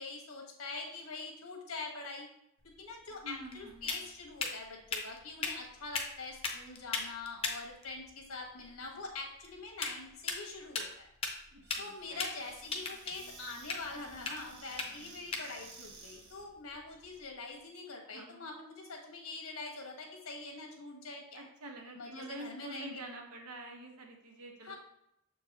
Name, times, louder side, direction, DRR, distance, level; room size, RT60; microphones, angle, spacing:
voice 1, 0.0-2.3 2.8-11.1 11.8-21.4 21.9-23.0 24.6-24.7, left 3 dB, 75° left, 0 dB, 1.5 m, -44 dB
sound 1, 2.6-17.3, left 4 dB, 25° left, 0.7 m, -41 dB
voice 2, 3.2-4.0 11.5-12.2 18.1-18.4 21.3-24.7, right 1 dB, 85° right, 1 dB, 1.2 m, -47 dB
Squeak / Cupboard open or close, 11.6-16.5, right 3 dB, 50° right, 1.7 m, -54 dB
7.1 x 4.6 x 2.9 m, 0.79 s
head